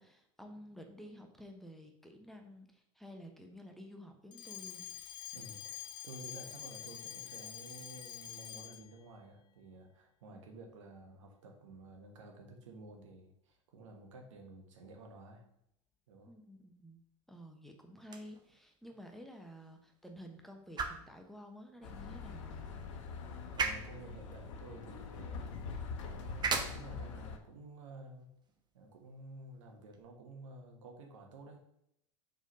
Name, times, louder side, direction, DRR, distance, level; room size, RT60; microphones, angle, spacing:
voice 1, 0.0-4.8 10.3-10.4 16.2-17.0 17.3-22.6, equal, ahead, 3 dB, 0.9 m, -52 dB
Alarm, 4.3-9.0, left 11 dB, 30° left, 0.4 m, -46 dB
voice 2, 5.3-15.4 16.1-16.3 23.5-28.3 28.7-31.6, right 2 dB, 80° right, 2 dB, 1.4 m, -52 dB
sound 1, 18.0-30.0, right 4 dB, 25° right, 0.9 m, -43 dB
sound 2, 21.8-27.4, left 5 dB, 75° left, 0.9 m, -44 dB
4.9 x 3.9 x 5.2 m, 0.76 s
hypercardioid pair, 90°, 16 cm